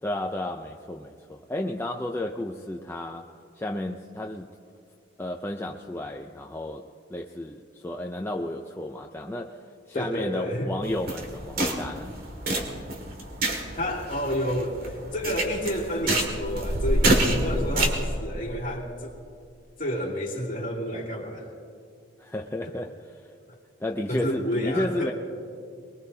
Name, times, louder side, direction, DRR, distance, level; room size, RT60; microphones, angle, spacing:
voice 1, 0.0-3.3 3.6-4.5 5.2-12.1 22.2-23.0 23.8-25.1, left 1 dB, 10° left, 1 dB, 0.5 m, -32 dB
voice 2, 9.9-10.8 13.7-19.1 19.8-21.5 22.6-22.8 24.1-25.1, equal, 45° left, -2 dB, 2.7 m, -30 dB
sound 1, 10.8-18.1, right 1 dB, 50° right, 2.0 m, -27 dB
23.5 x 21.5 x 2.8 m, 2.4 s
head